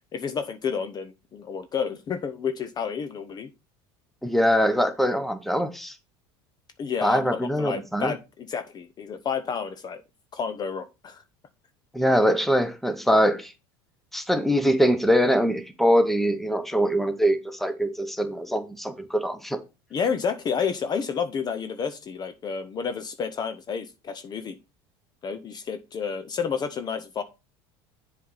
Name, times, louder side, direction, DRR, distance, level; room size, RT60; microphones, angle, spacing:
voice 1, 0.1-3.5 6.8-10.0 10.3-11.2 19.9-24.6 25.2-27.2, left 6 dB, 35° left, 10 dB, 0.8 m, -30 dB
voice 2, 4.2-5.9 7.0-8.1 11.9-13.5 14.1-19.6, equal, ahead, 10 dB, 1.1 m, -23 dB
7.4 x 4.2 x 5.6 m, 0.27 s
supercardioid pair, 105°, 12 cm